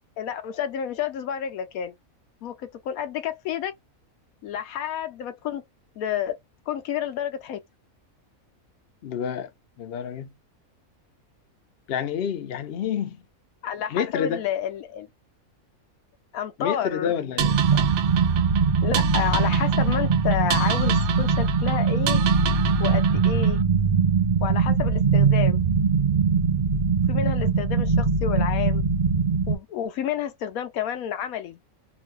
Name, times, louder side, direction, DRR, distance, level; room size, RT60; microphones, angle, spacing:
voice 1, 0.2-1.9 2.4-2.5 2.8-3.7 4.4-5.6 6.0-6.3 6.7-7.6 13.6-15.1 16.3-17.1 17.7-17.8 18.8-22.2 22.8-23.6 24.4-25.6 27.1-28.8 29.5-31.6, left 9 dB, 85° left, 1.1 m, -30 dB
voice 2, 9.0-9.5 9.8-10.3 11.9-13.2 13.9-14.4 16.6-17.5, left 8 dB, 60° left, 0.7 m, -28 dB
sound 1, 17.4-29.6, right 5 dB, 45° right, 0.5 m, -21 dB
sound 2, 17.4-23.6, right 10 dB, 80° right, 1.0 m, -31 dB
3.0 x 2.3 x 3.1 m
omnidirectional pair, 1.5 m